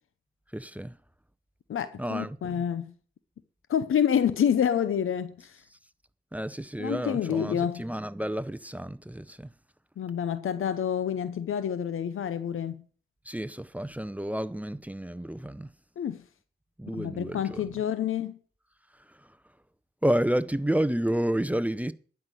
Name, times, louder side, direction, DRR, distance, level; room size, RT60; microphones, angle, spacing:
voice 1, 0.5-1.0 2.0-2.6 6.3-9.5 13.3-15.7 16.8-17.7 19.1-19.2 20.0-21.9, right 1 dB, 5° right, 0.7 m, -30 dB
voice 2, 1.7-2.9 3.7-5.6 6.8-7.8 10.0-12.8 16.0-16.2 17.0-18.4, left 8 dB, 85° left, 0.7 m, -28 dB
11.0 x 5.9 x 7.8 m
cardioid pair, 50°, 21 cm